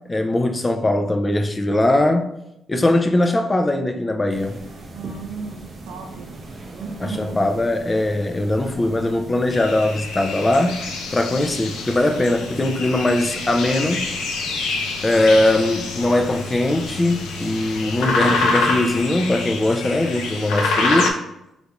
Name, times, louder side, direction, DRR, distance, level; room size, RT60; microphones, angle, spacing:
voice 1, 0.0-2.3 2.7-4.6 7.0-14.0 15.0-21.1, left 1 dB, 20° left, 0.4 m, -20 dB
sound 1, 4.3-19.0, right 2 dB, 40° right, 0.6 m, -39 dB
voice 2, 4.9-6.4 6.7-7.4, right 4 dB, 85° right, 0.6 m, -35 dB
sound 2, 9.5-21.1, left 3 dB, 90° left, 0.5 m, -26 dB
3.3 x 2.5 x 2.9 m
cardioid pair, 90°, 0 cm